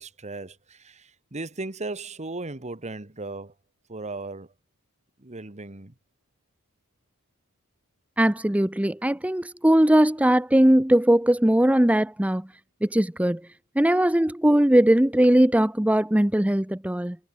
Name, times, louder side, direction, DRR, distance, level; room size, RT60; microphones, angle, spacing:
voice 1, 0.0-3.5 3.9-4.5 5.2-5.9, right 2 dB, 30° right, 1.6 m, -36 dB
voice 2, 8.2-12.5 12.8-13.4 13.8-17.2, right 1 dB, 5° right, 0.7 m, -20 dB
head